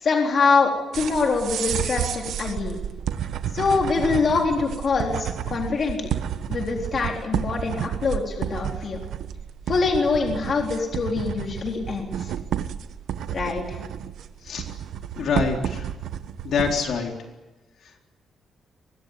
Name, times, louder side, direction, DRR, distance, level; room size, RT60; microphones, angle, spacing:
voice 1, 0.0-2.8 3.5-6.1 6.5-9.0 9.7-12.3 13.3-13.8, left 4 dB, 35° left, 1 dB, 3.8 m, -24 dB
sound 1, 0.9-17.0, right 9 dB, 80° right, 1.4 m, -31 dB
voice 2, 15.2-15.8 16.4-17.1, left 5 dB, 60° left, 2 dB, 4.0 m, -25 dB
24.0 x 20.0 x 9.5 m, 1.1 s
wide cardioid pair, 175°, 0 cm